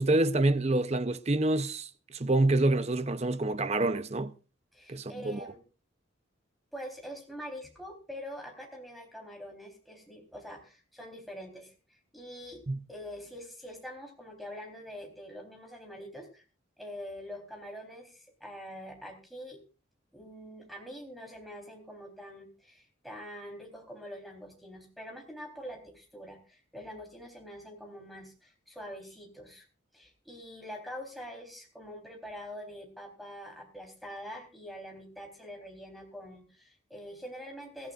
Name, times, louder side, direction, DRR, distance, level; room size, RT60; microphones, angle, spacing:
voice 1, 0.0-4.3 4.9-5.5 12.7-12.8, right 2 dB, 30° right, 0.6 m, -27 dB
voice 2, 4.7-5.6 6.7-12.6 12.9-16.4 16.8-19.6 20.1-29.7 29.9-37.9, equal, ahead, 3.7 m, -45 dB
22.5 x 14.5 x 2.5 m
head